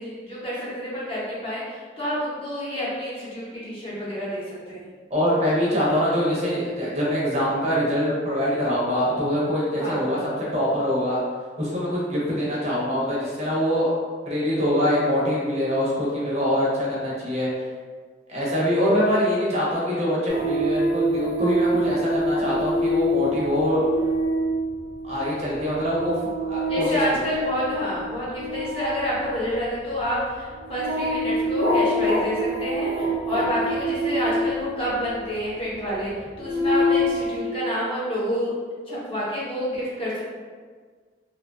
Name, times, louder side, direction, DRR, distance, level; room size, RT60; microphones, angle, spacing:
voice 1, 0.0-4.8 9.7-10.1 26.7-36.1 36.4-38.5 38.9-40.2, equal, 30° left, -8 dB, 0.8 m, -28 dB
voice 2, 5.1-11.2 11.6-13.9 14.2-17.5 18.3-23.8 25.0-26.9, equal, 35° right, -6 dB, 0.6 m, -24 dB
sound 1, 20.3-35.4 36.0-37.4, equal, 85° right, 0.6 m, -26 dB
2.6 x 2.2 x 2.5 m, 1.5 s
head